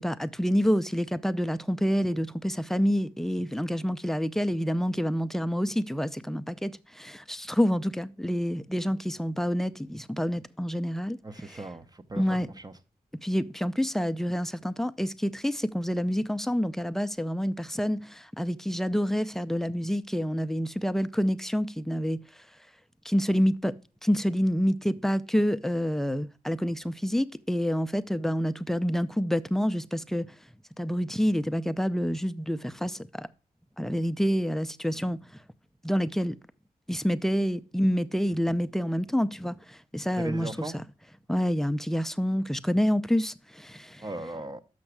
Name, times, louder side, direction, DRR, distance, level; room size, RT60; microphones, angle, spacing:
voice 1, 0.0-11.2 11.5-11.6 12.2-12.5 13.2-22.2 23.1-23.7 24.0-30.3 30.8-33.3 33.8-35.2 35.8-36.4 36.9-39.5 39.9-40.7 41.3-44.0, equal, 5° left, 0.5 m, -27 dB
voice 2, 11.2-12.7 40.1-40.8 44.0-44.6, right 2 dB, 25° right, 0.8 m, -38 dB
6.4 x 5.9 x 5.9 m
cardioid pair, 50°, 15 cm